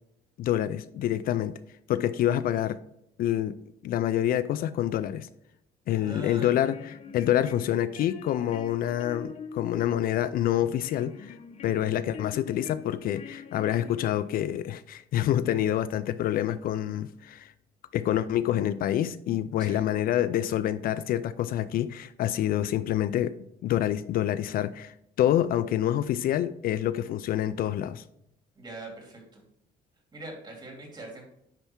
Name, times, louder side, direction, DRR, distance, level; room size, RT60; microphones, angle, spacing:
voice 1, 0.4-1.6 1.9-2.8 3.2-5.3 5.9-6.8 7.1-11.4 11.6-17.5 17.9-28.0, left 11 dB, 60° left, 0.4 m, -27 dB
voice 2, 6.0-6.7 19.6-19.8 28.6-29.4 30.1-31.2, right 2 dB, 25° right, 2.7 m, -42 dB
sound 1, 6.4-14.4, left 5 dB, 40° left, 0.7 m, -45 dB
9.9 x 3.4 x 4.4 m
cardioid pair, 110°, 17 cm